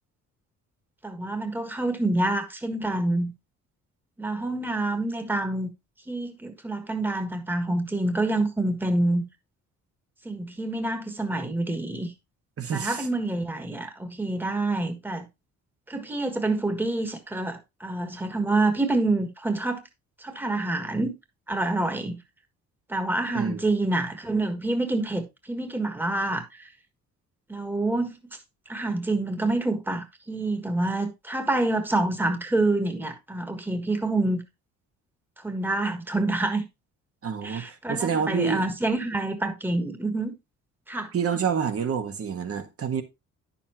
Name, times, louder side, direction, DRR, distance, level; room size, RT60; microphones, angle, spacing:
voice 1, 1.0-3.3 4.2-5.7 6.1-9.2 10.2-12.1 12.7-15.3 15.9-19.8 20.2-21.1 21.5-22.2 22.9-26.7 27.5-28.2 28.7-34.4 35.4-36.6 37.4-40.3 40.9-41.1, right 2 dB, 5° right, 1.5 m, -27 dB
voice 2, 12.6-13.1 23.3-23.7 37.2-38.7 41.1-43.0, right 7 dB, 50° right, 1.6 m, -28 dB
9.7 x 7.0 x 3.0 m
cardioid pair, 90°, 30 cm